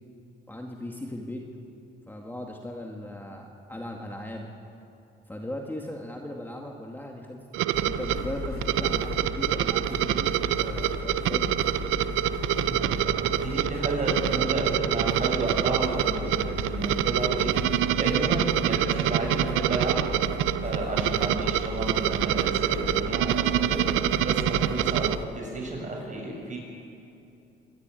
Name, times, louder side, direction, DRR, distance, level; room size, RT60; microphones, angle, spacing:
voice 1, 0.5-1.4 2.1-4.5 5.3-7.4 7.8-11.5, left 1 dB, 10° left, 1 dB, 2.1 m, -38 dB
sound 1, 7.5-25.2, right 13 dB, 90° right, 0.6 m, -26 dB
sound 2, 7.7-25.3, left 5 dB, 55° left, 3.4 m, -36 dB
voice 2, 12.6-19.9 20.6-23.8 24.2-26.6, right 2 dB, 40° right, -1 dB, 7.2 m, -32 dB
25.0 x 12.5 x 9.2 m, 2.7 s
cardioid pair, 90°, 20 cm